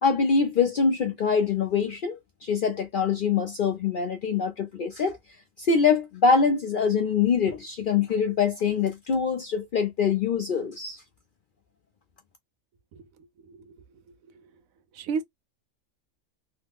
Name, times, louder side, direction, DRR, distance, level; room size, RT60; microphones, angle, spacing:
voice 1, 0.0-5.2 5.6-11.0, left 5 dB, 65° left, 0.5 m, -24 dB
voice 2, 12.9-13.8 14.4-14.5 14.9-15.2, right 5 dB, 85° right, 1.0 m, -34 dB
3.1 x 2.0 x 3.3 m
omnidirectional pair, 1.4 m